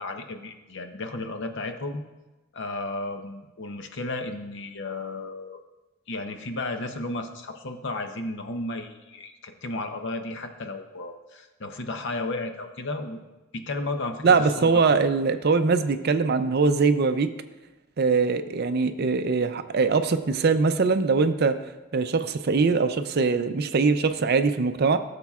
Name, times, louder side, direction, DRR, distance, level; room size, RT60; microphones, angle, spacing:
voice 1, 0.0-2.0 2.5-5.6 6.1-13.2 13.5-14.2 14.6-14.8, left 2 dB, 60° left, 6 dB, 0.8 m, -33 dB
voice 2, 14.2-17.3 18.0-21.5 21.9-25.0, right 4 dB, 50° right, 10 dB, 0.5 m, -22 dB
16.0 x 6.8 x 2.4 m, 1.1 s
head